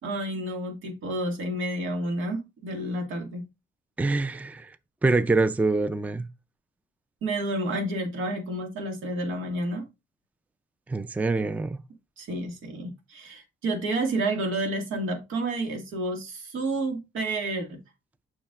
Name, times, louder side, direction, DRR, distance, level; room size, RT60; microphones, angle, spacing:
voice 1, 0.0-3.4 7.2-9.8 12.2-17.8, right 1 dB, 85° right, 1.9 m, -30 dB
voice 2, 4.0-4.7 5.0-6.3 10.9-11.8, right 3 dB, 10° right, 0.4 m, -25 dB
7.1 x 5.7 x 2.4 m
cardioid pair, 90°, 20 cm